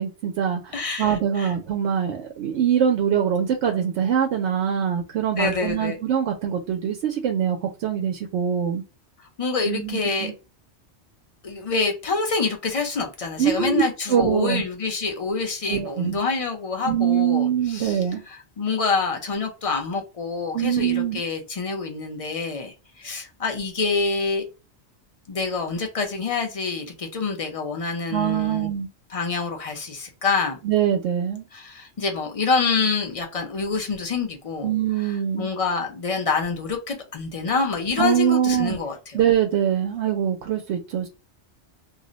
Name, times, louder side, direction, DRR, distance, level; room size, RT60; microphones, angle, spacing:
voice 1, 0.0-8.8 9.7-10.3 13.4-13.8 14.1-14.6 15.7-16.2 16.9-18.2 20.5-21.2 28.1-28.9 30.6-31.5 34.6-35.5 38.0-38.8 39.1-41.1, right 9 dB, 80° right, 0.9 m, -23 dB
voice 2, 0.7-1.5 5.4-6.0 9.2-10.3 11.4-24.4 25.3-28.7 29.1-30.6 31.5-34.7 35.0-39.2, left 4 dB, 40° left, 0.6 m, -27 dB
2.4 x 2.1 x 3.8 m
omnidirectional pair, 1.1 m